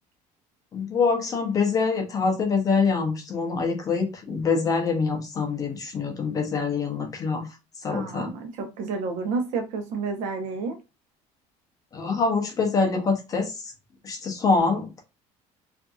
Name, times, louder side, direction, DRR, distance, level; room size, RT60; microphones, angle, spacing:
voice 1, 0.7-7.5 7.8-8.3 11.9-13.7 14.0-15.0, left 4 dB, 25° left, 0.6 m, -25 dB
voice 2, 7.9-10.8, right 4 dB, 65° right, 0.8 m, -30 dB
2.6 x 2.5 x 2.3 m
cardioid pair, 170°, 13 cm